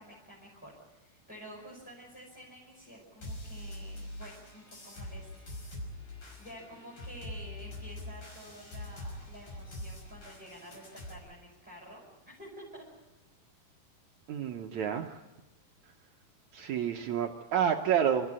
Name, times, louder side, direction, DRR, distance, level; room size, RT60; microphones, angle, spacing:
voice 1, 0.0-5.4 6.4-12.8, equal, ahead, -3 dB, 5.2 m, -50 dB
sound 1, 3.2-11.1, left 1 dB, 50° left, 6.9 m, -44 dB
voice 2, 14.3-15.2 16.5-18.3, right 8 dB, 75° right, 4 dB, 1.7 m, -29 dB
28.5 x 14.5 x 9.7 m, 1.1 s
omnidirectional pair, 4.6 m